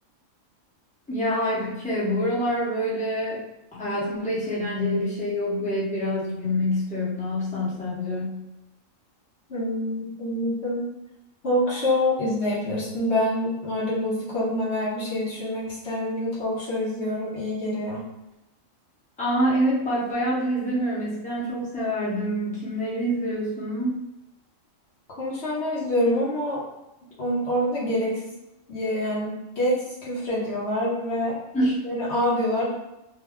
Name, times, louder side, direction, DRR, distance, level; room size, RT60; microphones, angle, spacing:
voice 1, 1.1-3.4 3.7-8.4 19.2-24.0 31.5-31.8, equal, 5° left, -9 dB, 0.9 m, -26 dB
voice 2, 9.5-10.8 11.4-18.0 25.2-26.6 27.2-28.2 28.7-31.4 31.8-32.7, left 1 dB, 55° left, -7 dB, 1.2 m, -26 dB
3.3 x 2.1 x 3.5 m, 0.92 s
omnidirectional pair, 1.4 m